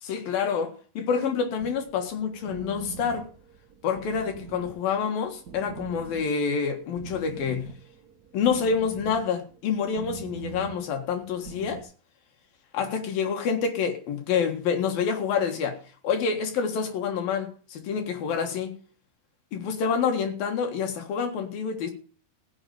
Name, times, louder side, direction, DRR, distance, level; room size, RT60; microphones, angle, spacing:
voice 1, 0.0-3.3 3.8-7.7 8.3-11.9 12.7-15.8 16.0-18.8 19.5-21.9, left 6 dB, 80° left, 3.5 m, -27 dB
sound 1, 1.6-11.8, right 6 dB, 60° right, 0.9 m, -43 dB
16.0 x 5.3 x 9.3 m
omnidirectional pair, 4.0 m